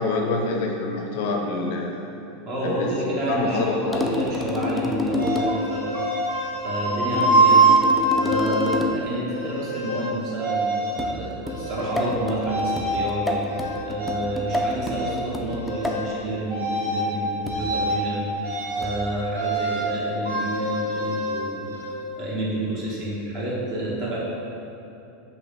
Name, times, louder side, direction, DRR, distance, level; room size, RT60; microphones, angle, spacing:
voice 1, 0.0-2.1 2.6-2.9 3.3-4.1, left 3 dB, 60° left, 1 dB, 0.5 m, -26 dB
voice 2, 2.4-6.0 6.6-7.7 8.2-18.5 18.8-21.7 22.2-24.2, right 1 dB, 50° right, -5 dB, 1.2 m, -29 dB
sound 1, 3.9-5.7 7.1-9.1 11.0-16.1 17.5-17.8 18.8-19.1, left 2 dB, ahead, 0.4 m, -29 dB
sound 2, 5.2-8.7 9.3-10.1 10.4-11.1 11.4-12.1 12.5-13.0 13.5-14.7 14.9-15.2 15.5-16.1 16.5-17.1 17.4-18.0 18.4-19.0 19.3-19.9 20.2-21.9, right 2 dB, 75° right, 0.9 m, -24 dB
6.0 x 2.5 x 3.2 m, 2.8 s
figure-of-eight pair, 85°, 0 cm